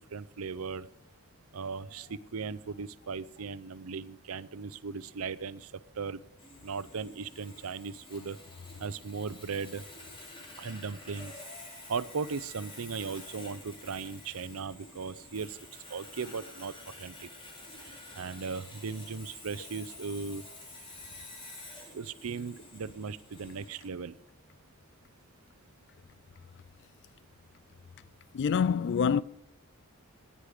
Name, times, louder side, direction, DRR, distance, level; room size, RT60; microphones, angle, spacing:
voice 1, 0.1-0.9 1.5-6.2 6.6-8.4 8.8-9.8 10.6-11.3 11.9-15.6 15.9-17.3 17.8-20.4 21.9-24.2, right 5 dB, 75° right, 0.6 m, -37 dB
Sawing, 6.4-23.9, left 2 dB, 25° left, 2.7 m, -49 dB
voice 2, 28.3-29.2, left 6 dB, 55° left, 0.4 m, -26 dB
15.0 x 9.9 x 5.0 m
head